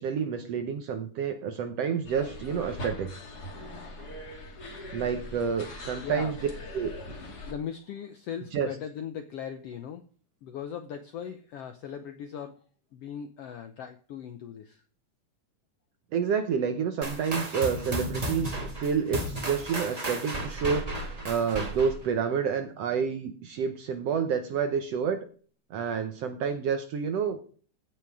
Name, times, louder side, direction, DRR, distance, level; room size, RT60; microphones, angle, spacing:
voice 1, 0.0-3.1 4.9-6.3 6.7-7.2 8.5-8.7 16.1-25.3 25.7-27.4, right 6 dB, 65° right, 7 dB, 1.6 m, -29 dB
sound 1, 2.0-7.5, left 1 dB, 35° left, 2.0 m, -41 dB
voice 2, 6.0-6.3 7.5-10.0 10.4-12.6 12.9-14.8, left 8 dB, 75° left, 8 dB, 1.4 m, -39 dB
sound 2, 17.0-22.1, right 1 dB, 30° right, 0.7 m, -34 dB
15.5 x 6.0 x 4.8 m, 0.42 s
omnidirectional pair, 3.8 m